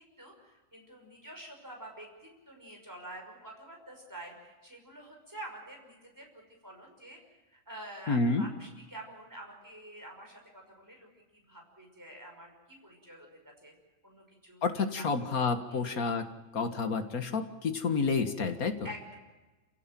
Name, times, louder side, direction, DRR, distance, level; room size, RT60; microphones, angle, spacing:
voice 1, 0.2-2.1 2.5-7.2 7.5-11.1 11.5-13.3 13.6-13.7 14.0-14.6 15.0-15.3 15.7-16.1 18.8-19.1, right 1 dB, 15° right, 1 dB, 5.7 m, -48 dB
voice 2, 8.1-8.5 14.6-16.3 16.5-18.8, left 4 dB, 85° left, 8 dB, 2.2 m, -29 dB
28.0 x 16.5 x 7.7 m, 1.2 s
omnidirectional pair, 1.5 m